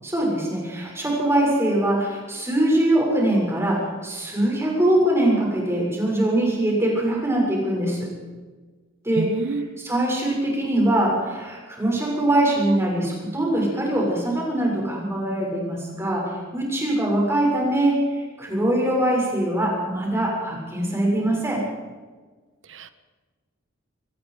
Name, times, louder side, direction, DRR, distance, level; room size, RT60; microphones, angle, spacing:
voice 1, 0.0-8.1 9.0-21.6, right 1 dB, 10° right, -2 dB, 7.1 m, -22 dB
voice 2, 9.2-9.7 22.7-22.9, right 2 dB, 60° right, 10 dB, 1.5 m, -28 dB
25.0 x 20.0 x 5.2 m, 1.4 s
head